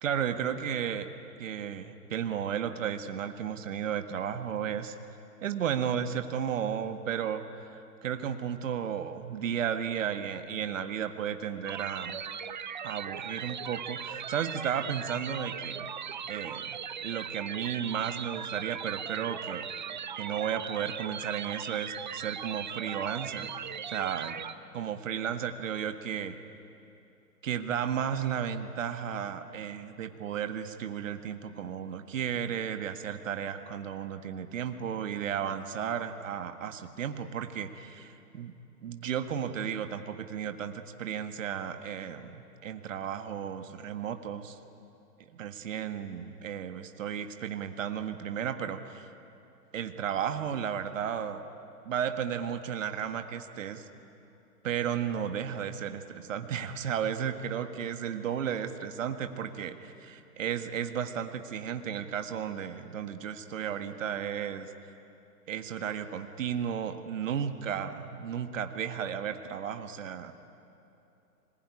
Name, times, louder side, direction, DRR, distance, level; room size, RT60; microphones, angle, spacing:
voice 1, 0.0-1.1 1.4-4.9 5.4-12.2 12.8-15.9 16.3-19.7 20.2-23.5 23.9-24.4 24.7-26.4 27.4-38.5 38.8-44.6 45.3-49.1 49.7-51.4 51.8-53.8 54.6-64.7 65.5-70.3, right 8 dB, 50° right, 7 dB, 1.7 m, -34 dB
sound 1, 11.7-24.5, right 7 dB, 30° right, 0.5 m, -39 dB
26.5 x 20.5 x 9.8 m, 2.8 s
hypercardioid pair, 145°, 48 cm